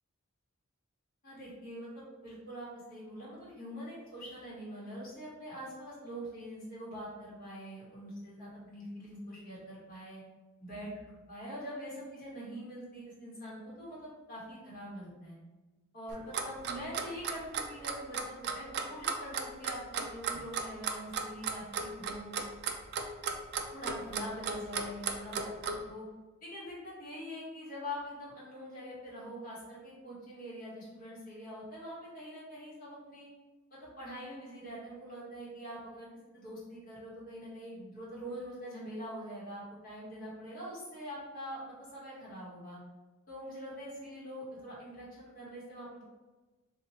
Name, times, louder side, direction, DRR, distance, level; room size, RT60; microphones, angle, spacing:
voice 1, 1.2-10.2 10.6-10.9 11.3-15.4 15.9-22.4 23.7-26.1 26.4-33.3 34.0-36.1 36.3-42.8 43.3-46.0, equal, 40° left, -8 dB, 1.5 m, -44 dB
Clock, 16.1-25.8, right 6 dB, 50° right, 0.3 m, -34 dB
2.9 x 2.7 x 4.1 m, 1.2 s
head